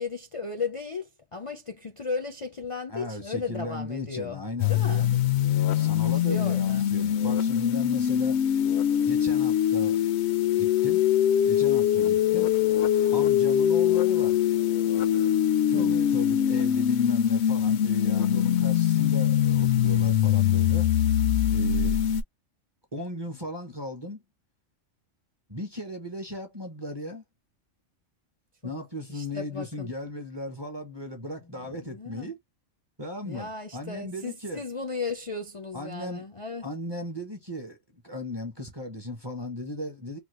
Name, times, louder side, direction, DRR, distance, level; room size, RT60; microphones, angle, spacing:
voice 1, 0.0-4.4 4.7-5.1 5.8-6.9 15.7-16.2 29.1-29.9 31.4-32.3 33.2-36.7, left 4 dB, 40° left, 0.5 m, -35 dB
voice 2, 2.9-5.3 5.7-8.4 9.1-10.0 10.6-11.0 11.5-12.5 13.1-14.4 15.7-20.9 21.5-22.0 22.9-24.2 25.5-27.2 28.6-32.4 33.0-34.6 35.7-36.2 36.6-40.2, left 1 dB, 25° right, 0.7 m, -36 dB
sound 1, 4.6-22.2, left 10 dB, 65° left, 0.8 m, -23 dB
3.3 x 2.2 x 3.0 m
omnidirectional pair, 1.3 m